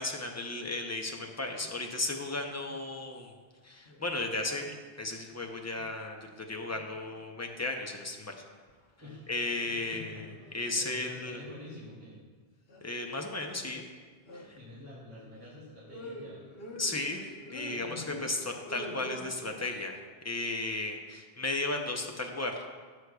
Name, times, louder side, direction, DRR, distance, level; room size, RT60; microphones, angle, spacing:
voice 1, 0.0-3.3 3.6-8.4 9.3-10.3 10.5-11.4 12.8-13.8 14.3-14.6 16.8-22.7, left 2 dB, 20° left, 3 dB, 0.6 m, -35 dB
sound 1, 1.1-1.8 2.1-3.0 3.9-5.9 6.3-7.5 7.8-8.9 9.2-11.6 12.7-12.9 13.5-13.9 14.3-19.7, left 1 dB, 65° left, 1.2 m, -49 dB
voice 2, 9.7-12.2 14.6-16.5 17.7-18.2, left 1 dB, 15° right, -10 dB, 2.4 m, -48 dB
14.5 x 6.4 x 2.3 m, 1.5 s
omnidirectional pair, 1.0 m